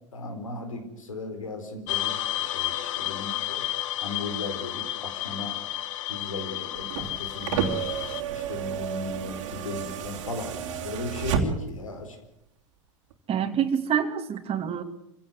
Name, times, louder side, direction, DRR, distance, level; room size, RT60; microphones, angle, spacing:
voice 1, 0.1-3.6 4.0-5.6 6.1-7.7 8.3-12.2, left 2 dB, 90° left, 7 dB, 4.2 m, -36 dB
sound 1, 1.9-8.2, left 13 dB, 70° left, 0.9 m, -32 dB
sound 2, 6.8-11.9 13.1-13.2, right 7 dB, 70° right, 3.0 m, -31 dB
voice 2, 13.3-14.8, right 8 dB, 35° right, 7 dB, 2.7 m, -26 dB
25.5 x 16.5 x 8.0 m, 0.78 s
hypercardioid pair, 85°, 17 cm